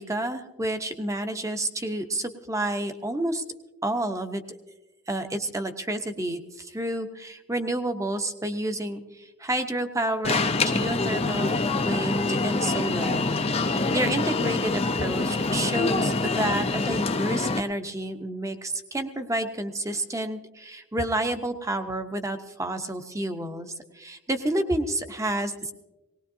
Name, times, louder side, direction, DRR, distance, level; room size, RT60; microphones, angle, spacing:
voice 1, 0.0-3.4 3.8-4.4 5.1-25.7, right 1 dB, 15° right, 7 dB, 0.8 m, -30 dB
Alarm, 10.2-17.6, left 3 dB, 25° left, 0.5 m, -25 dB
20.5 x 19.0 x 2.7 m, 1.1 s
head